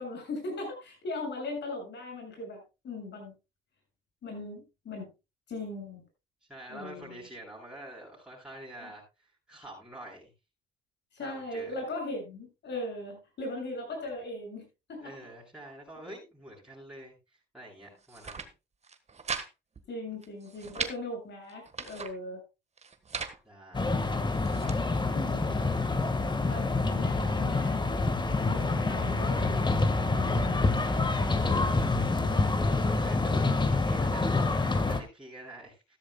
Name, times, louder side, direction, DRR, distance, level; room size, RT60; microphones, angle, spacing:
voice 1, 0.0-3.3 4.2-5.1 5.5-6.0 6.7-7.2 8.8-8.9 11.1-15.1 19.9-22.4 25.1-25.5 26.3-27.8 28.2-31.1, left 2 dB, 60° left, 3 dB, 7.2 m, -39 dB
voice 2, 6.4-10.3 11.2-11.8 15.0-18.5 23.4-24.0 31.2-32.1 32.6-36.0, right 1 dB, 5° right, -6 dB, 7.9 m, -47 dB
sound 1, 18.0-18.5 18.8-19.5 19.8-19.9 20.2-21.0 21.5-22.1 22.8-23.4 24.0-24.8, right 5 dB, 35° right, 1.5 m, -38 dB
sound 2, 23.7-35.0, left 3 dB, 20° left, 1.6 m, -27 dB
14.5 x 13.0 x 2.3 m, 0.26 s
cardioid pair, 90°, 20 cm